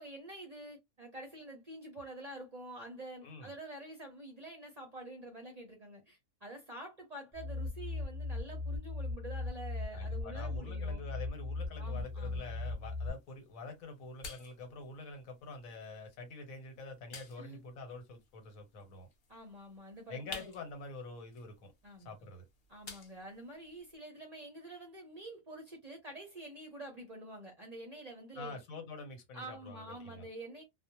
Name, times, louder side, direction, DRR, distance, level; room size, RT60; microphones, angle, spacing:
voice 1, 0.0-11.0 11.8-12.4 17.4-17.6 19.3-20.5 21.8-22.1 22.7-28.6 29.3-30.6, right 1 dB, 45° right, 0.5 m, -47 dB
sound 1, 7.3-13.1, left 3 dB, 15° left, 0.4 m, -38 dB
voice 2, 9.9-19.1 20.1-21.7 22.0-22.4 28.3-30.3, left 3 dB, 90° left, 1.3 m, -46 dB
sound 2, 12.0-24.0, left 4 dB, 50° left, 0.7 m, -54 dB
2.4 x 2.1 x 2.8 m
omnidirectional pair, 1.4 m